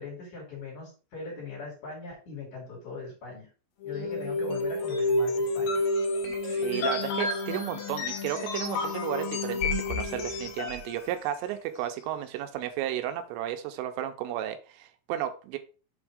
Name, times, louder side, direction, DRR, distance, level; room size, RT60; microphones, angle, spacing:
voice 1, 0.0-3.5 3.8-5.8, left 4 dB, 45° left, -3 dB, 3.4 m, -40 dB
sound 1, 3.8-11.0, left 2 dB, 70° left, 2.3 m, -29 dB
voice 2, 6.4-15.6, right 11 dB, 85° right, 7 dB, 3.2 m, -33 dB
7.1 x 3.6 x 4.8 m, 0.35 s
omnidirectional pair, 5.7 m